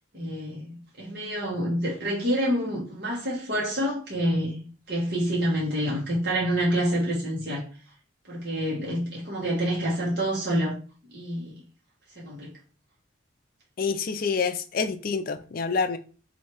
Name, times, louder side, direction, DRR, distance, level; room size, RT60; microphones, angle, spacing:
voice 1, 0.1-7.7 8.3-10.8 11.1-11.5 12.2-12.5, equal, 50° right, 1.2 m, -27 dB
voice 2, 13.8-16.0, left 5 dB, 45° left, 0.4 m, -27 dB
3.2 x 2.7 x 4.5 m
head